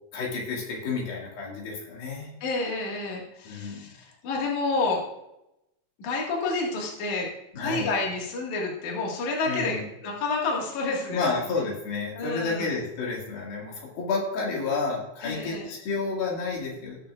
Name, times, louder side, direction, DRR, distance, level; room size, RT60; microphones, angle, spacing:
voice 1, 0.1-2.3 3.5-3.8 7.5-7.9 9.4-9.8 11.1-17.0, left 4 dB, 80° left, -2 dB, 3.9 m, -30 dB
voice 2, 2.4-5.0 6.0-7.3 7.6-11.2 12.1-12.7 15.2-15.7, left 3 dB, 60° left, -2 dB, 3.1 m, -29 dB
19.5 x 6.6 x 2.5 m, 0.87 s
omnidirectional pair, 4.2 m